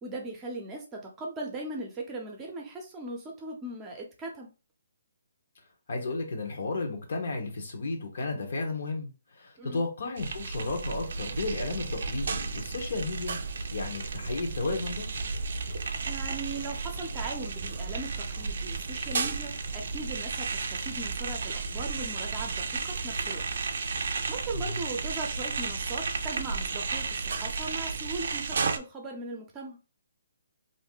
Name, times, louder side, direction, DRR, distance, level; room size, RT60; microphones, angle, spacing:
voice 1, 0.0-4.5 9.6-9.8 16.1-23.4 24.0-29.8, right 2 dB, 15° right, 0.7 m, -39 dB
voice 2, 5.9-13.4 13.7-15.1 24.5-24.8, left 3 dB, 65° left, 0.9 m, -33 dB
sound 1, 10.2-28.8, right 4 dB, 65° right, 0.4 m, -33 dB
2.6 x 2.1 x 3.7 m
hypercardioid pair, 155°, 0 cm